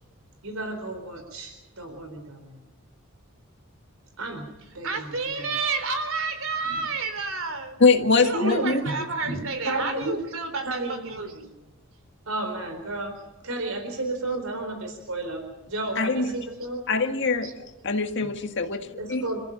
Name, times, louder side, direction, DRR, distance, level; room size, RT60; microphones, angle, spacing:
voice 1, 0.4-2.6 4.2-5.1 5.4-5.5 8.3-8.7 9.2-10.2 10.6-11.0 12.3-13.2 13.4-16.8 19.0-19.4, right 2 dB, 85° right, 4.1 m, -32 dB
voice 2, 4.8-7.8 8.2-11.5 17.4-17.5, right 4 dB, 70° right, 3.7 m, -30 dB
voice 3, 7.8-8.8 16.0-16.3 16.9-17.5 17.8-18.8 19.1-19.3, left 4 dB, 60° left, 2.0 m, -22 dB
28.0 x 15.0 x 7.1 m
head